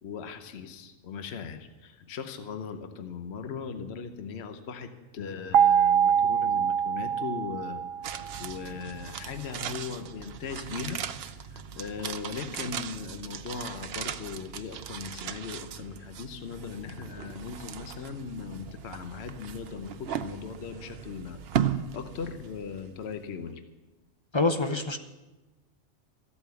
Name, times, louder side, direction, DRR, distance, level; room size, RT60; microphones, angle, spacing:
voice 1, 0.0-7.8 8.1-11.0 11.5-23.6, left 6 dB, 60° left, 8 dB, 1.1 m, -39 dB
sound 1, 5.5-8.5, right 8 dB, 85° right, 1.0 m, -24 dB
sound 2, 8.0-23.2 23.5-23.6, right 8 dB, 60° right, 0.8 m, -37 dB
voice 2, 24.3-25.0, left 3 dB, 30° left, 8 dB, 0.5 m, -25 dB
14.0 x 8.4 x 7.0 m, 1.1 s
omnidirectional pair, 1.3 m